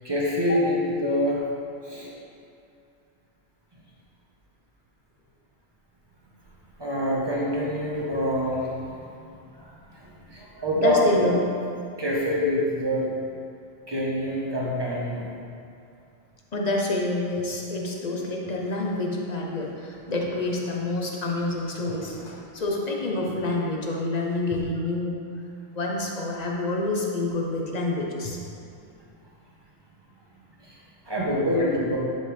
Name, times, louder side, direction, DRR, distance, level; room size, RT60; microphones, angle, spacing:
voice 1, 0.0-1.4 1.8-2.1 6.8-8.7 9.2-9.3 9.6-11.0 11.9-13.1 13.9-15.3 30.6-30.7 31.1-32.0, equal, 20° right, -5 dB, 1.4 m, -26 dB
voice 2, 10.8-11.4 16.5-25.2 25.7-28.4 31.5-31.7, left 2 dB, 40° left, -2 dB, 1.1 m, -27 dB
11.0 x 5.6 x 3.5 m, 2.6 s
omnidirectional pair, 1.2 m